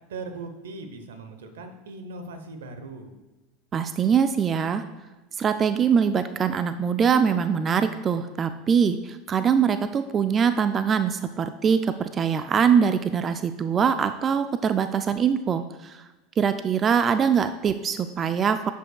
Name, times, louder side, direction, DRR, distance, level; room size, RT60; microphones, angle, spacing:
voice 1, 0.1-3.1, right 3 dB, 85° right, 8 dB, 0.8 m, -39 dB
voice 2, 3.7-4.8 5.4-16.0 16.4-18.7, right 7 dB, 30° right, 10 dB, 0.3 m, -23 dB
11.0 x 5.3 x 2.3 m, 1.1 s
hypercardioid pair, 100°, 0 cm